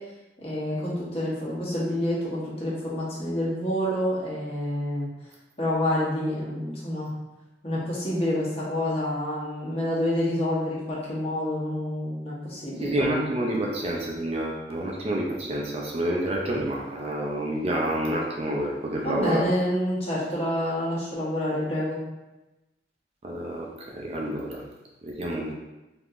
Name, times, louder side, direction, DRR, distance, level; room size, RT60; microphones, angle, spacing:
voice 1, 0.4-5.1 5.6-7.1 7.6-12.9 19.0-22.0, left 1 dB, 35° left, -7 dB, 1.0 m, -28 dB
voice 2, 12.8-19.4 23.2-23.7 23.9-24.6 25.0-25.5, right 1 dB, 35° right, -2 dB, 0.4 m, -28 dB
3.5 x 2.8 x 2.5 m, 1.0 s
head